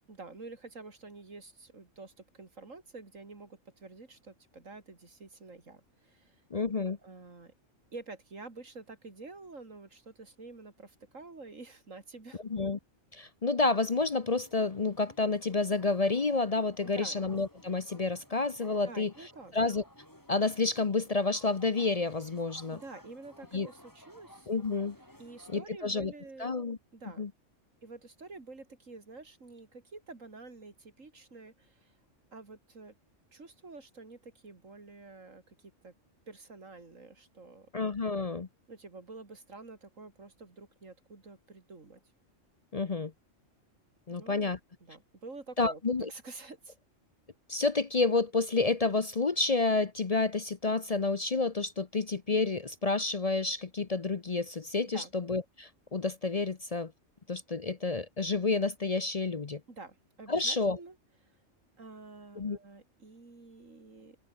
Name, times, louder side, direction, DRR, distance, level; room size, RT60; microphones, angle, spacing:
voice 1, 0.1-6.4 7.0-7.5 7.9-12.4 16.8-17.2 18.8-19.5 22.7-24.5 25.2-26.5 26.9-27.2 27.8-31.9 32.3-32.9 33.3-35.9 36.3-37.7 38.7-42.0 44.1-44.5 44.8-45.8 46.1-46.8 54.9-55.1 59.7-61.0 61.2-61.3 61.8-64.2, right 3 dB, 85° right, 3.8 m, -48 dB
voice 2, 6.5-7.0 12.5-12.8 13.1-19.1 19.5-19.8 20.3-22.8 23.5-23.7 24.5-25.0 25.5-26.1 26.4-26.8 27.2-27.3 37.7-38.5 42.7-43.1 44.1-44.6 45.6-46.1 47.5-56.9 57.3-59.6 60.3-60.8 62.4-62.6, left 3 dB, 35° left, 0.8 m, -29 dB
sound 1, 13.9-25.6, equal, 15° left, 6.3 m, -57 dB
omnidirectional pair, 1.3 m